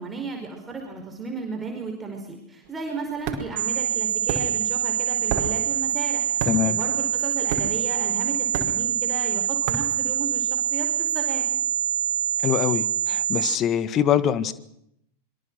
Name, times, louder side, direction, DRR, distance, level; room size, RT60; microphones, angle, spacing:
voice 1, 0.0-11.4, right 4 dB, 15° right, 2 dB, 4.9 m, -35 dB
sound 1, 2.6-10.8, right 6 dB, 45° right, 5.0 m, -33 dB
sound 2, 3.6-13.6, right 10 dB, 60° right, 3.4 m, -25 dB
voice 2, 6.4-6.8 12.4-14.5, left 9 dB, 30° left, 14 dB, 1.7 m, -23 dB
26.0 x 23.5 x 6.2 m, 0.74 s
figure-of-eight pair, 90°, 0 cm